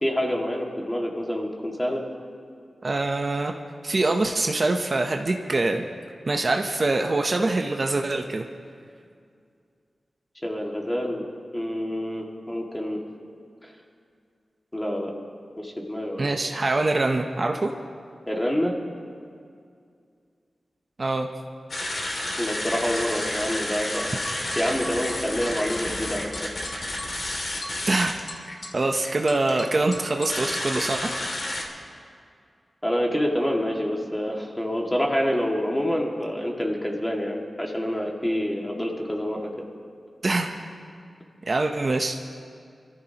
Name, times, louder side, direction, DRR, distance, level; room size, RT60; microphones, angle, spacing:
voice 1, 0.0-2.0 10.4-11.2 11.5-13.0 14.7-15.1 15.6-16.4 18.3-18.7 22.4-24.2 24.6-26.5 32.8-39.5, equal, 15° left, -1 dB, 2.1 m, -27 dB
voice 2, 2.8-3.5 3.8-5.8 6.3-8.4 16.2-17.7 21.0-21.3 27.9-28.1 28.7-31.0 40.2-40.5 41.5-42.4, right 2 dB, 40° right, 3 dB, 0.8 m, -24 dB
sound 1, 21.7-31.6, left 1 dB, 55° left, 2.4 m, -31 dB
25.5 x 14.0 x 2.9 m, 2.3 s
wide cardioid pair, 105°, 0 cm